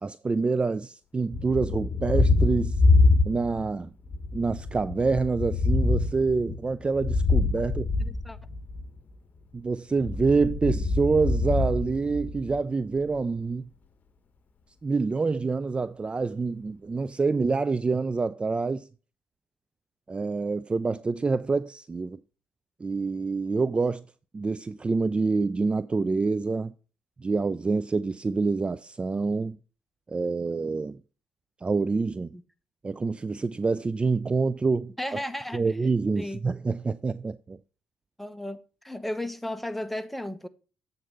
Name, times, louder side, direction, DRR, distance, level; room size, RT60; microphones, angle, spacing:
voice 1, 0.0-2.8 3.3-3.9 4.3-7.9 9.5-13.7 14.8-18.9 20.1-22.2 22.8-24.0 24.3-26.7 27.2-29.6 30.1-31.0 31.6-32.3 32.8-34.9 35.5-37.6, right 4 dB, 25° right, 0.4 m, -26 dB
Thunder, 1.3-3.7 4.1-8.9 9.9-12.6, left 3 dB, 40° left, 1.1 m, -25 dB
voice 2, 8.0-8.4 32.3-32.4 35.0-35.7 36.2-36.4 38.2-38.6 38.8-40.5, left 1 dB, 5° left, 0.8 m, -34 dB
7.8 x 3.9 x 5.4 m
hypercardioid pair, 55°, 4 cm